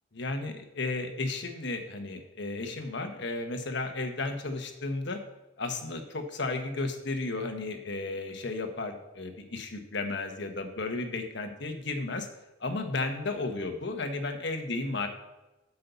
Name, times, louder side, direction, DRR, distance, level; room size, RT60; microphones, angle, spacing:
voice 1, 0.1-5.2 5.6-12.3 12.6-15.1, left 3 dB, 65° left, 6 dB, 1.2 m, -33 dB
8.0 x 5.6 x 6.9 m, 1.0 s
head